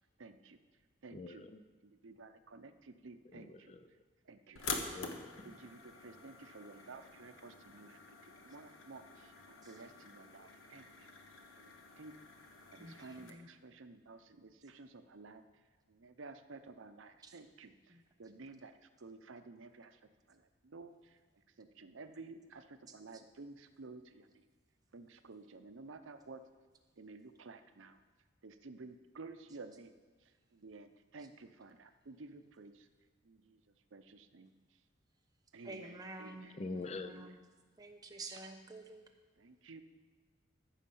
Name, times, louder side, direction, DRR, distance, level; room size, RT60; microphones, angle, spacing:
voice 1, 0.2-0.6 1.0-1.5 1.8-3.7 4.2-4.9 5.4-11.1 11.5-12.2 12.7-15.4 15.9-20.0 20.3-21.2 21.6-24.4 24.9-26.4 27.0-28.0 28.4-29.9 30.2-32.9 33.2-33.6 33.9-34.5 35.5-36.6 37.0-37.4 38.4-38.5 39.4-39.8, right 3 dB, 75° right, 9 dB, 0.7 m, -53 dB
sound 1, 4.6-13.3, left 4 dB, 90° left, 1.3 m, -47 dB
voice 2, 4.9-5.3 36.6-37.2, left 3 dB, 30° left, 10 dB, 0.4 m, -42 dB
voice 3, 12.8-13.5 17.9-18.0 35.7-36.5 36.7-37.4 37.8-39.0, right 2 dB, 20° right, 3 dB, 0.9 m, -49 dB
14.0 x 6.4 x 5.5 m, 1.4 s
head